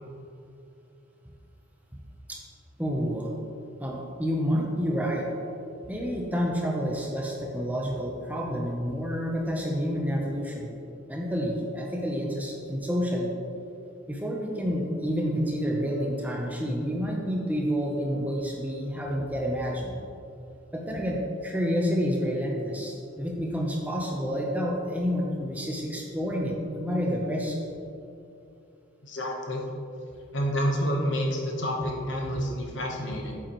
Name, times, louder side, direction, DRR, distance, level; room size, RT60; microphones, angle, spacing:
voice 1, 2.8-3.3 3.8-5.3 5.9-10.7 11.1-13.3 14.1-20.0 20.7-27.6, equal, 5° right, -1 dB, 0.7 m, -29 dB
voice 2, 29.0-29.6 30.3-33.4, equal, 60° left, 1 dB, 1.1 m, -29 dB
8.6 x 7.8 x 3.0 m, 2.6 s
head